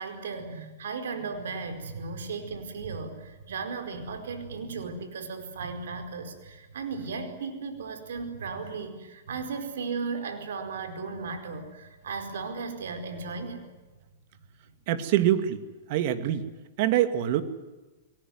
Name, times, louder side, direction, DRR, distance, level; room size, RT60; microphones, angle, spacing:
voice 1, 0.0-13.7, right 4 dB, 80° right, 7 dB, 4.7 m, -36 dB
voice 2, 14.9-15.6 15.9-16.4 16.8-17.4, right 12 dB, 55° right, 11 dB, 2.4 m, -24 dB
22.5 x 19.5 x 9.5 m, 1.2 s
hypercardioid pair, 130°, 0 cm